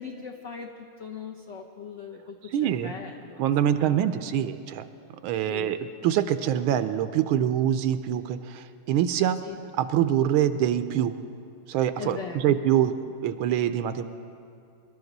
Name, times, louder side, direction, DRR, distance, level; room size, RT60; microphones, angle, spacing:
voice 1, 0.0-3.5 3.8-4.1 5.3-5.8 9.4-9.6 12.0-12.6, left 6 dB, 70° left, 1 dB, 0.7 m, -40 dB
voice 2, 2.5-2.9 3.4-4.9 5.2-5.8 6.0-9.4 9.8-11.2 11.7-12.9 13.2-14.1, right 10 dB, 80° right, 11 dB, 1.4 m, -24 dB
23.5 x 12.0 x 4.0 m, 2.5 s
omnidirectional pair, 2.3 m